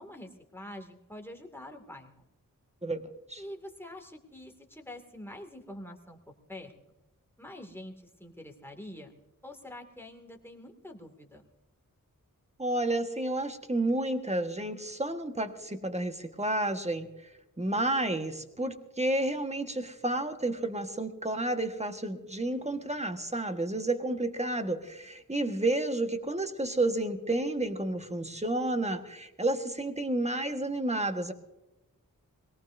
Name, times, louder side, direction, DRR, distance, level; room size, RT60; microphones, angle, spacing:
voice 1, 0.0-2.1 3.4-6.7 7.4-9.1 9.4-11.4 24.0-24.2, left 1 dB, 5° left, 3 dB, 2.3 m, -46 dB
voice 2, 2.8-3.4 12.6-17.1 17.6-31.3, right 1 dB, 20° right, 7 dB, 1.5 m, -31 dB
22.5 x 18.0 x 2.7 m, 1.0 s
wide cardioid pair, 45°, 34 cm